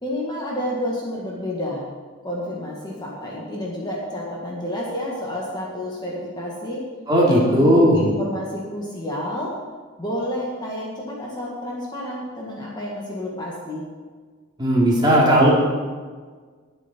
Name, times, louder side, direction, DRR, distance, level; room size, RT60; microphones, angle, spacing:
voice 1, 0.0-1.9 2.2-6.8 7.2-9.6 10.0-13.9, equal, 20° left, -4 dB, 2.0 m, -29 dB
voice 2, 7.1-8.1 14.6-15.5, equal, 20° right, -5 dB, 3.2 m, -16 dB
20.0 x 7.4 x 4.6 m, 1.5 s
head